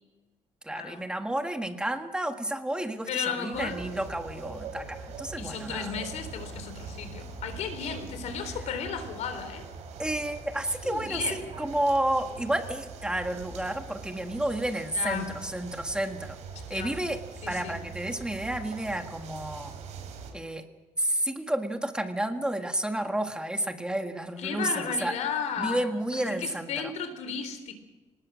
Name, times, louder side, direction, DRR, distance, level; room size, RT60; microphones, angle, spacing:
voice 1, 0.6-5.9 10.0-16.4 16.7-17.2 17.5-19.7 20.3-20.7 21.0-25.2 25.6-26.7, right 1 dB, 5° right, 5 dB, 1.6 m, -31 dB
voice 2, 3.1-3.8 5.4-9.7 10.8-11.4 14.9-15.3 16.7-16.9 17.4-17.8 24.4-27.7, left 7 dB, 80° left, 9 dB, 3.8 m, -34 dB
sound 1, 3.5-20.3, right 5 dB, 70° right, 5.7 m, -42 dB
26.0 x 19.5 x 6.3 m, 1.2 s
cardioid pair, 145°, 12 cm